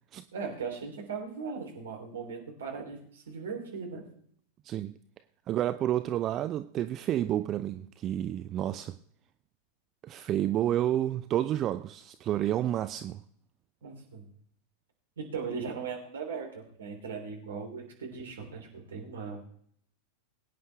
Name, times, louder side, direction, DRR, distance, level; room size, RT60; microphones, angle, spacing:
voice 1, 0.3-4.0 13.8-14.3 15.2-19.4, right 5 dB, 65° right, 3.4 m, -38 dB
voice 2, 4.6-5.0 5.5-9.0 10.0-13.2, right 12 dB, 30° right, 0.5 m, -30 dB
22.0 x 9.4 x 3.5 m
figure-of-eight pair, 90°, 0 cm